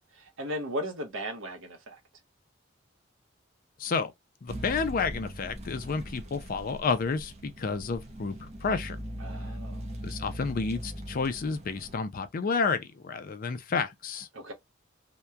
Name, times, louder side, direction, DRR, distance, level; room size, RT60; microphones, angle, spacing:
voice 1, 0.1-2.0 9.2-9.8 14.3-14.5, equal, 85° right, 0.8 m, -36 dB
voice 2, 3.8-4.1 4.4-9.0 10.0-14.3, left 4 dB, 45° left, 0.4 m, -30 dB
sound 1, 4.5-12.0, equal, 35° right, 0.7 m, -40 dB
2.8 x 2.2 x 2.3 m
head